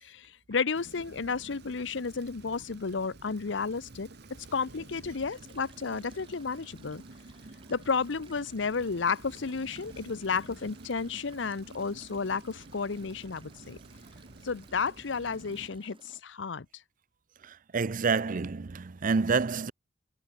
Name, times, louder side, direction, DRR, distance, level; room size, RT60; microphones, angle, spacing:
voice 1, 0.0-4.1 4.5-7.0 7.7-13.8 14.4-16.7, left 5 dB, 70° left, 0.7 m, -32 dB
Rain, 0.7-15.7, right 2 dB, 60° right, 1.4 m, -51 dB
sound 1, 5.3-16.2, right 2 dB, 30° right, 1.5 m, -56 dB
voice 2, 17.4-19.7, right 4 dB, 45° right, 0.6 m, -28 dB
head